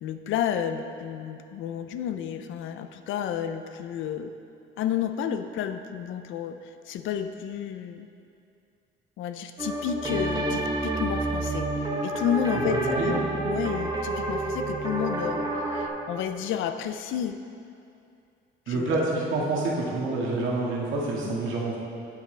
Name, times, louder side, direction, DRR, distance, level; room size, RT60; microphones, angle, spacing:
voice 1, 0.0-4.3 4.8-8.1 9.2-17.4 18.7-18.9 21.2-21.4, left 9 dB, 80° left, 9 dB, 0.5 m, -31 dB
sound 1, 9.6-15.9, right 2 dB, 20° right, 1.0 m, -29 dB
voice 2, 12.7-13.2 18.7-21.8, right 2 dB, 80° right, -5 dB, 1.9 m, -27 dB
8.8 x 8.4 x 3.3 m, 2.5 s
cardioid pair, 90°, 20 cm